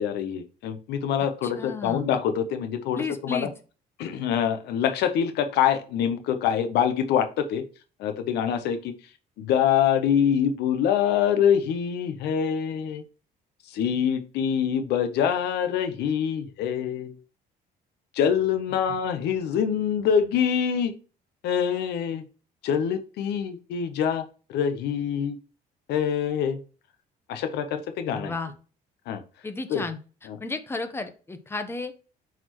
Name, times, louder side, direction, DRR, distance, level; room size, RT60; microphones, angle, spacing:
voice 1, 0.0-3.4 4.0-7.6 8.0-8.9 9.4-13.0 13.7-17.2 18.1-20.9 21.4-22.2 22.6-25.4 25.9-26.6 27.3-28.3 29.1-29.2 29.7-29.8 30.3-30.4, left 8 dB, 80° left, 9 dB, 0.9 m, -25 dB
voice 2, 1.4-2.2 2.9-3.5 18.9-19.0 28.1-28.5 29.4-30.0 30.4-31.9, left 3 dB, 15° left, 8 dB, 0.9 m, -33 dB
8.1 x 4.3 x 3.0 m, 0.36 s
cardioid pair, 110°, 17 cm